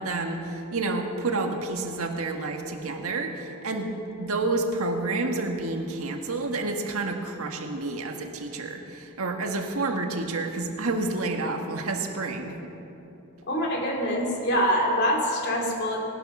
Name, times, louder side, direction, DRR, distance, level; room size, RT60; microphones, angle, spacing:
voice 1, 0.0-3.9 4.2-12.7, right 3 dB, 85° right, 3 dB, 1.6 m, -29 dB
voice 2, 13.4-16.0, equal, 50° left, 0 dB, 2.7 m, -25 dB
19.0 x 11.0 x 6.1 m, 2.8 s
head